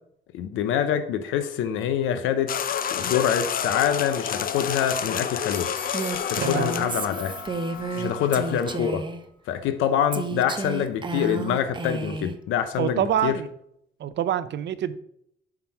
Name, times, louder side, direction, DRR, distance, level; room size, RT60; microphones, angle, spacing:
voice 1, 0.3-2.5 2.9-5.7 6.1-7.4 8.0-9.0 9.5-13.3, left 9 dB, 90° left, 10 dB, 0.6 m, -25 dB
sound 1, 2.5-8.8, left 8 dB, 45° left, 0.5 m, -30 dB
sound 2, 5.5-8.6 9.0-9.1, left 4 dB, 10° left, 1.8 m, -45 dB
Female speech woman speaking, 5.9-9.2 10.1-12.4, right 3 dB, 25° right, 0.7 m, -31 dB
voice 2, 6.4-6.8 7.9-8.2 12.8-13.5 14.0-14.9, right 10 dB, 65° right, 13 dB, 0.6 m, -26 dB
5.9 x 4.2 x 5.8 m, 0.73 s
cardioid pair, 90°, 20 cm